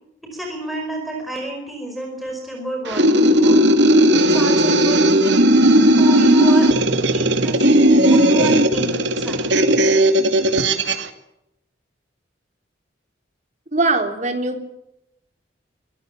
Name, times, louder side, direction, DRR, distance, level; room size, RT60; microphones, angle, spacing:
voice 1, 0.3-3.6 4.2-5.0 6.0-6.7 7.1-7.7 8.0-9.5, right 1 dB, ahead, 0 dB, 5.1 m, -29 dB
sound 1, 2.9-11.1, right 1 dB, 75° right, 2.5 m, -15 dB
voice 2, 13.7-14.6, right 2 dB, 40° right, 5 dB, 3.7 m, -21 dB
25.0 x 19.0 x 7.4 m, 0.85 s
head